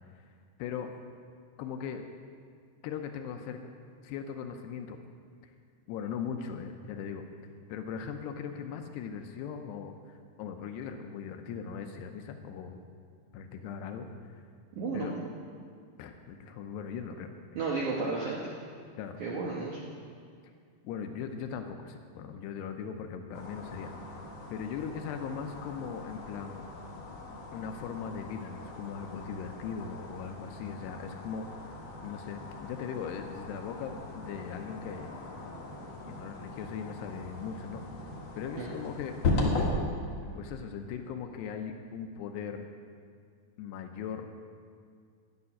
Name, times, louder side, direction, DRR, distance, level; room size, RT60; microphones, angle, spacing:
voice 1, 0.6-0.9 1.6-2.0 2.8-3.7 4.0-5.0 5.9-7.2 7.7-12.8 13.3-14.1 14.3-14.4 14.9-15.1 16.0-17.3 19.0-19.2 20.8-23.9 24.5-26.7 27.5-31.6 32.0-35.1 36.1-37.8 38.4-39.2 40.3-42.7 43.6-44.3, left 7 dB, 80° left, 6 dB, 2.7 m, -39 dB
voice 2, 14.8-15.1 17.6-18.6 19.2-19.8 38.6-38.7, right 3 dB, 70° right, -4 dB, 1.8 m, -32 dB
sound 1, 23.3-39.7, left 3 dB, 55° left, 1.9 m, -38 dB
12.0 x 6.8 x 9.8 m, 2.2 s
omnidirectional pair, 5.1 m